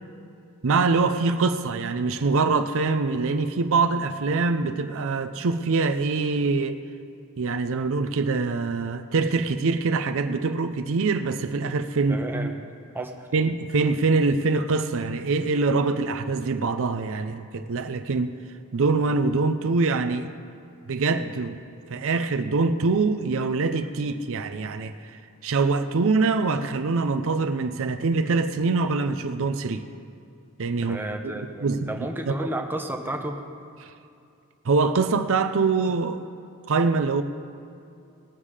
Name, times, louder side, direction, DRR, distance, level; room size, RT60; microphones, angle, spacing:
voice 1, 0.6-6.8 7.4-12.5 13.3-18.3 18.7-20.3 20.9-21.6 21.9-29.9 30.6-31.0 31.6-31.9 32.3-32.4 33.8-33.9 34.6-36.3 36.7-37.2, right 4 dB, 65° right, 9 dB, 0.5 m, -24 dB
voice 2, 12.1-13.3 30.8-33.4, right 1 dB, 10° right, 3 dB, 0.9 m, -32 dB
19.5 x 7.3 x 4.9 m, 2.6 s
head